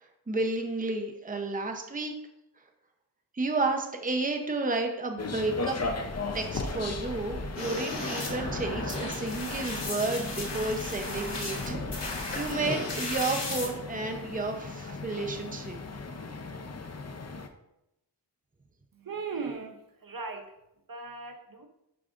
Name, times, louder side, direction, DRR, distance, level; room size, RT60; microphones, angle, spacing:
voice 1, 0.3-2.1 3.3-5.8 6.3-11.8 12.4-15.8, right 3 dB, 20° right, 4 dB, 0.7 m, -31 dB
sound 1, 5.2-17.5, left 3 dB, 35° left, 0.6 m, -37 dB
sound 2, 7.6-13.7, left 2 dB, 75° left, 1.7 m, -35 dB
voice 2, 18.9-20.6 20.9-21.7, right 4 dB, 50° right, 5 dB, 0.8 m, -38 dB
11.0 x 4.8 x 2.5 m, 0.87 s
wide cardioid pair, 80°, 43 cm